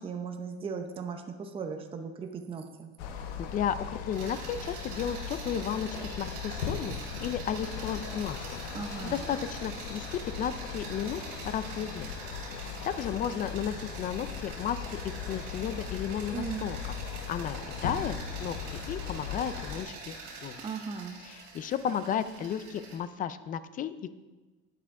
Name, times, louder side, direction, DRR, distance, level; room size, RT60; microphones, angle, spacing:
voice 1, 0.0-2.9 8.7-9.2 16.3-16.7 20.6-21.2, right 5 dB, 20° right, 5 dB, 0.7 m, -37 dB
sound 1, 3.0-19.8, left 7 dB, 80° left, 1.2 m, -39 dB
voice 2, 3.4-6.9 7.2-8.6 9.0-12.2 12.6-18.6 18.9-20.6 21.2-24.1, left 8 dB, 25° left, 13 dB, 0.4 m, -34 dB
sound 2, 4.1-23.0, right 4 dB, 55° right, 3.5 m, -45 dB
11.5 x 9.3 x 3.6 m, 1.2 s
cardioid pair, 150°, 31 cm